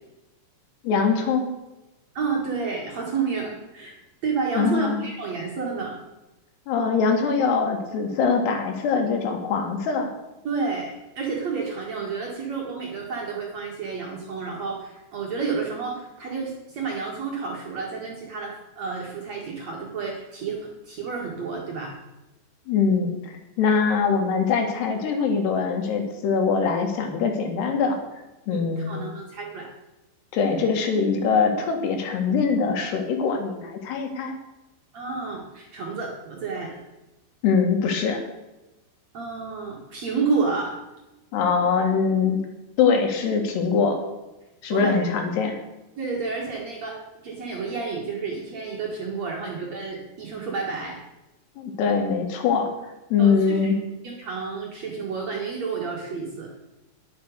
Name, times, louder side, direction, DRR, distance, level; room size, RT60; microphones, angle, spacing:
voice 1, 0.8-1.5 4.6-5.1 6.7-10.1 22.7-28.0 28.5-29.0 30.3-34.4 37.4-38.2 41.3-42.4 42.8-44.0 44.6-45.6 51.6-52.7 53.1-53.8, left 5 dB, 75° left, 4 dB, 3.7 m, -23 dB
voice 2, 2.1-4.0 4.2-6.0 10.4-21.9 28.5-29.7 34.9-36.8 39.1-40.8 44.7-45.0 46.0-51.0 53.2-53.7 54.0-56.5, right 4 dB, 50° right, -1 dB, 2.3 m, -30 dB
10.0 x 9.9 x 6.6 m, 1.0 s
omnidirectional pair, 5.0 m